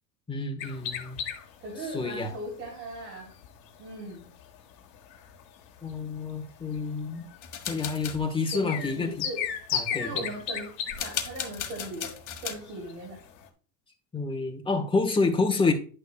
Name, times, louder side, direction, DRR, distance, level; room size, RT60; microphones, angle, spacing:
voice 1, 0.3-1.2 1.8-2.3 5.8-7.3 7.7-9.3 9.7-10.3 14.1-15.7, left 4 dB, 10° left, 3 dB, 1.5 m, -28 dB
sound 1, 0.6-13.5, left 8 dB, 90° left, 1.6 m, -38 dB
voice 2, 1.6-3.3 3.8-4.2 8.5-9.4 9.9-12.1 12.4-13.2, right 1 dB, 85° right, -3 dB, 3.7 m, -38 dB
sound 2, 7.4-8.2 10.9-12.5, left 9 dB, 35° left, 1.6 m, -35 dB
10.5 x 6.4 x 2.4 m, 0.40 s
supercardioid pair, 110°, 50 cm